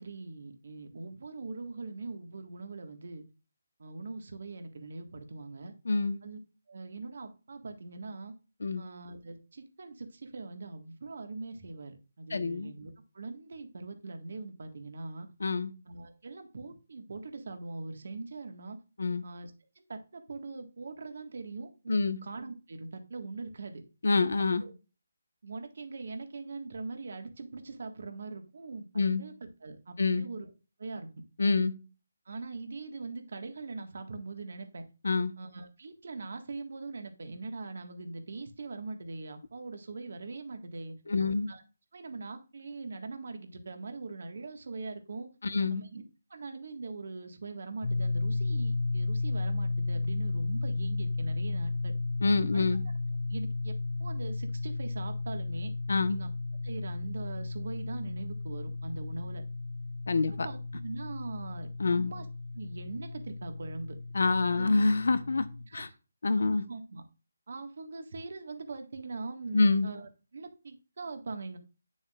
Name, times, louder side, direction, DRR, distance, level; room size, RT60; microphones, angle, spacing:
voice 1, 0.0-3.2 3.8-5.7 6.2-6.4 6.7-8.3 8.7-15.3 15.8-18.8 19.2-19.5 19.8-23.8 24.6-24.7 25.4-30.5 30.8-31.1 32.3-34.8 35.4-40.9 41.4-41.6 41.9-45.3 45.7-46.0 46.3-51.9 52.5-52.6 53.3-55.7 56.1-56.3 56.6-59.4 60.3-62.3 62.5-64.0 64.5-64.8 65.7-65.9 66.5-67.0 67.5-71.6, right 3 dB, 60° right, 6 dB, 1.7 m, -42 dB
voice 2, 5.8-6.2 8.6-8.8 12.3-12.7 15.4-15.7 19.0-19.2 21.9-22.2 24.0-24.6 28.9-29.2 30.0-30.3 31.4-31.7 35.0-35.3 41.1-41.5 45.4-45.8 52.2-52.8 55.9-56.2 60.1-60.5 61.8-62.1 64.1-65.5 65.7-65.9 66.2-66.6 69.5-69.9, left 3 dB, 70° left, 11 dB, 1.1 m, -26 dB
sound 1, 47.8-65.7, left 3 dB, 40° left, 0.8 m, -34 dB
9.1 x 7.0 x 2.4 m, 0.32 s
hypercardioid pair, 165°, 0 cm